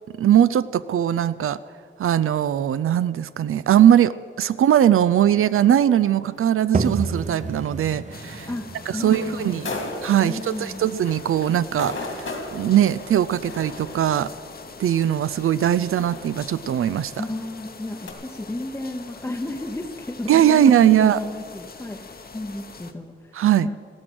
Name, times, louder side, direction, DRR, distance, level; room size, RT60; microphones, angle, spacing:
voice 1, 0.2-1.6 2.0-8.5 8.9-9.7 10.0-12.2 12.5-14.3 14.8-17.1 20.3-21.2 23.3-23.7, right 10 dB, 85° right, 16 dB, 0.4 m, -20 dB
sound 1, 5.1-18.1, left 2 dB, 70° left, 2.5 m, -39 dB
sound 2, 6.7-12.2, right 4 dB, 35° right, 0.6 m, -31 dB
sound 3, 8.1-22.9, left 4 dB, 45° left, 0.9 m, -43 dB
voice 2, 8.5-9.7 10.2-10.8 17.1-23.7, left 1 dB, 10° left, 2 dB, 0.7 m, -33 dB
16.0 x 14.0 x 6.1 m, 2.2 s
wide cardioid pair, 150°, 21 cm